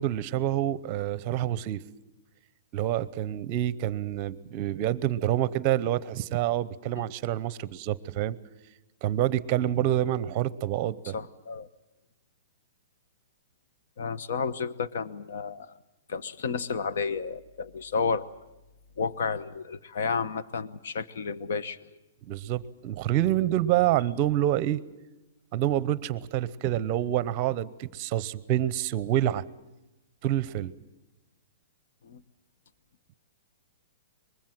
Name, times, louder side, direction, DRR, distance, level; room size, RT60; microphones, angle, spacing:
voice 1, 0.0-1.8 2.7-8.4 9.0-11.1 22.3-24.8 25.5-29.4 30.2-30.7, right 12 dB, 30° right, 19 dB, 0.8 m, -27 dB
voice 2, 10.8-11.7 14.0-15.7 16.1-18.3 19.0-21.9 32.0-32.2, left 5 dB, 65° left, 14 dB, 1.0 m, -32 dB
24.0 x 21.0 x 7.5 m, 0.99 s
hypercardioid pair, 165°, 0 cm